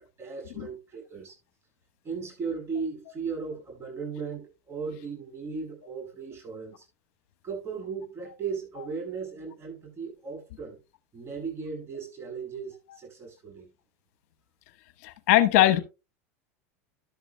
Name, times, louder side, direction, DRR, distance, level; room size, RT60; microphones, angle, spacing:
voice 1, 0.0-1.4 2.0-6.9 7.4-10.8 11.1-13.7, right 5 dB, 30° right, 7.5 m, -37 dB
voice 2, 15.0-15.8, left 14 dB, 65° left, 1.0 m, -20 dB
13.0 x 11.5 x 2.2 m
hypercardioid pair, 100°, 8 cm